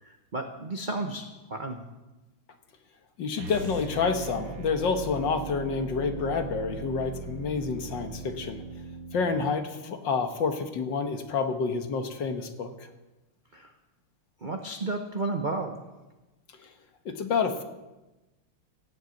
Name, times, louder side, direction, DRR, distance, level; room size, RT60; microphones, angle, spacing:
voice 1, 0.0-1.8 13.5-13.7 14.4-15.8, right 2 dB, 40° right, 4 dB, 0.7 m, -33 dB
voice 2, 3.2-8.6 9.1-12.9 17.1-17.6, left 5 dB, 60° left, 7 dB, 1.8 m, -28 dB
sound 1, 3.3-9.5, right 5 dB, 60° right, 2.0 m, -39 dB
16.5 x 8.0 x 8.3 m, 1.1 s
omnidirectional pair, 2.4 m